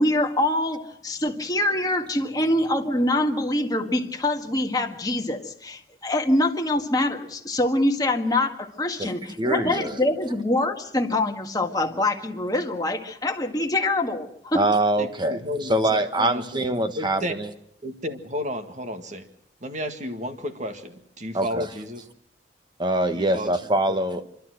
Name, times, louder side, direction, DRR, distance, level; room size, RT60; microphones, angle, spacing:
voice 1, 0.0-14.6, left 1 dB, 20° left, 3 dB, 1.7 m, -24 dB
voice 2, 9.4-10.0 14.5-17.5 21.3-21.7 22.8-24.2, right 1 dB, 25° right, 9 dB, 1.2 m, -24 dB
voice 3, 15.0-16.6 16.9-17.3 17.8-19.2 19.6-22.0 23.1-23.5 23.9-24.0, left 1 dB, 45° right, 7 dB, 1.8 m, -32 dB
27.5 x 12.5 x 7.8 m, 0.73 s
head